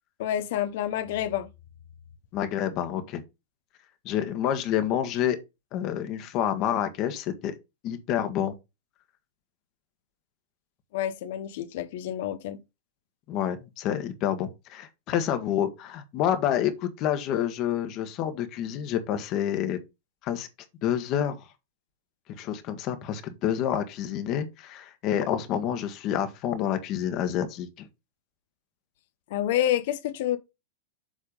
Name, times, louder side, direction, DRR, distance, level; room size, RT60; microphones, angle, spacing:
voice 1, 0.2-1.5 10.9-12.6 29.3-30.4, left 11 dB, 65° left, 0.8 m, -28 dB
voice 2, 2.3-3.2 4.0-5.4 5.7-7.5 7.8-8.5 13.3-19.8 20.2-20.5 20.8-21.4 22.4-27.9, left 10 dB, 45° left, 1.4 m, -28 dB
7.4 x 3.6 x 5.2 m
hypercardioid pair, 105°, 0 cm